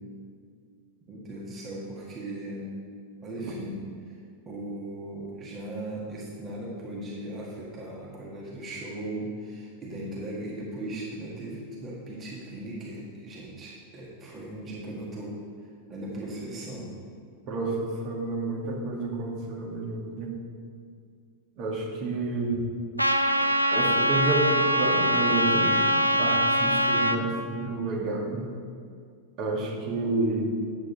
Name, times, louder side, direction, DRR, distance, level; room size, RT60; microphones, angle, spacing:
voice 1, 1.1-2.7 3.2-4.2 4.4-16.9, right 1 dB, 25° right, -4 dB, 1.8 m, -38 dB
voice 2, 17.5-20.4 21.6-22.6 23.7-25.8 26.2-28.5 29.4-30.5, right 2 dB, 40° right, -1 dB, 2.0 m, -29 dB
Trumpet, 23.0-27.2, equal, 90° left, 0.5 m, -23 dB
9.5 x 8.1 x 4.3 m, 2.2 s
figure-of-eight pair, 90°, 0 cm